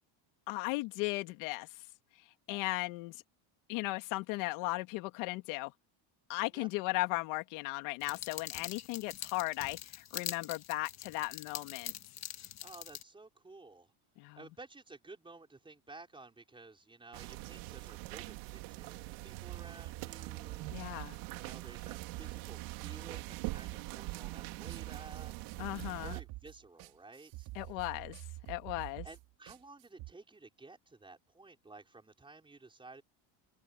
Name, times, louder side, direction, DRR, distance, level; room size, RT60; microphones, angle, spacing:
voice 1, 0.5-1.7 2.5-3.2 3.7-5.7 6.3-11.9 14.2-14.4 20.7-21.2 25.6-26.2 27.5-28.1 28.5-29.1, left 22 dB, 75° left, 2.6 m, -36 dB
sound 1, 8.0-13.0, left 11 dB, 35° left, 1.4 m, -44 dB
voice 2, 12.6-13.9 14.4-25.3 26.0-27.5 29.0-33.0, right 3 dB, 10° right, 5.2 m, -54 dB
sound 2, 17.1-26.2, right 22 dB, 85° right, 2.8 m, -44 dB
sound 3, 19.5-30.1, right 19 dB, 60° right, 4.6 m, -47 dB
open air
cardioid pair, 170°, 49 cm